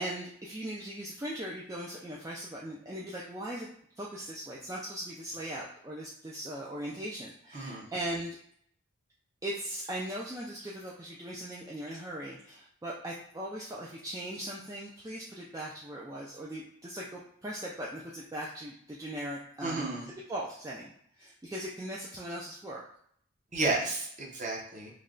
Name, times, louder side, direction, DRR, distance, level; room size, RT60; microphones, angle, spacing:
voice 1, 0.0-3.7 4.0-8.4 9.4-22.8, right 1 dB, 15° right, -4 dB, 0.3 m, -39 dB
voice 2, 7.5-7.9 19.6-20.0 23.5-24.9, right 2 dB, 35° right, -3 dB, 0.7 m, -32 dB
3.1 x 2.2 x 3.7 m, 0.64 s
head